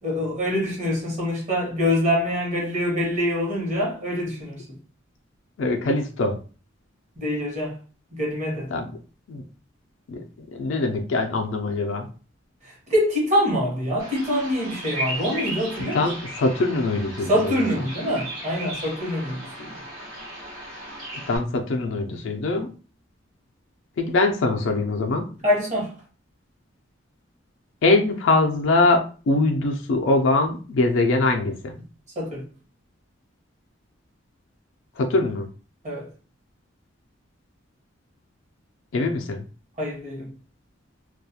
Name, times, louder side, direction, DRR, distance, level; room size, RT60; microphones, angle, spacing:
voice 1, 0.0-4.8 7.2-7.8 8.1-8.7 12.6-16.1 17.3-19.7 25.4-25.9 32.2-32.4 35.8-36.1 39.8-40.3, equal, 40° right, 1.0 m, -25 dB
voice 2, 5.6-6.4 8.7-8.9 9.3-9.4 10.1-10.2 10.5-12.1 15.9-17.6 21.3-22.7 24.0-25.3 27.8-31.8 35.0-35.5 38.9-39.4, left 2 dB, 70° left, 0.4 m, -22 dB
Bird vocalization bird call bird song, 14.0-21.4, right 1 dB, 75° right, 1.1 m, -35 dB
2.3 x 2.1 x 2.7 m
head